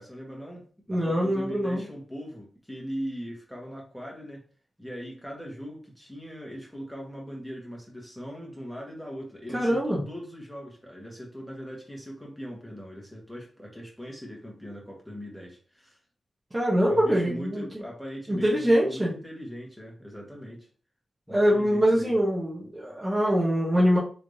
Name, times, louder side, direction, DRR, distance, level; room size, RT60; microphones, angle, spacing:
voice 1, 0.0-4.4 4.8-16.0 16.9-20.7 21.3-22.1, equal, ahead, -2 dB, 1.4 m, -40 dB
voice 2, 0.9-1.8 9.5-10.0 16.5-17.8 18.3-19.1 21.3-24.0, equal, 25° right, -6 dB, 1.1 m, -23 dB
3.2 x 3.2 x 2.7 m, 0.41 s
cardioid pair, 80°, 0 cm